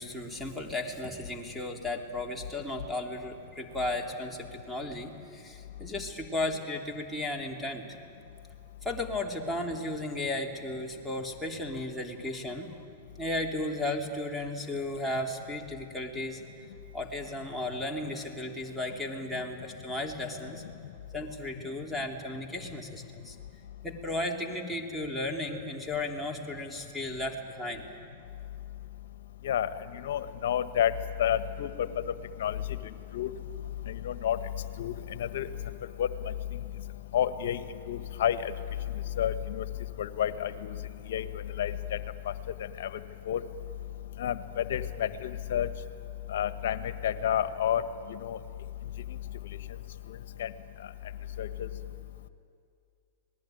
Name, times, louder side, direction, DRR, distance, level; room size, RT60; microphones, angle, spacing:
voice 1, 0.0-7.8 8.8-12.7 13.2-16.4 16.9-20.6 21.1-23.3 23.8-27.9, left 1 dB, ahead, -2 dB, 3.4 m, -35 dB
voice 2, 29.4-30.9 31.2-31.9 32.4-32.6 33.1-33.3 33.9-34.4 34.8-34.9 35.2-35.5 36.0-36.1 37.1-37.6 37.9-38.5 39.2-39.6 40.0-40.8 41.1-41.2 41.6-42.0 42.8-42.9 43.3-43.4 44.2-45.7 46.3-47.8 48.1-48.4 50.4-50.5 51.4-51.7, left 10 dB, 65° left, 12 dB, 1.4 m, -29 dB
26.0 x 19.0 x 9.4 m, 2.4 s
hypercardioid pair, 105°, 0 cm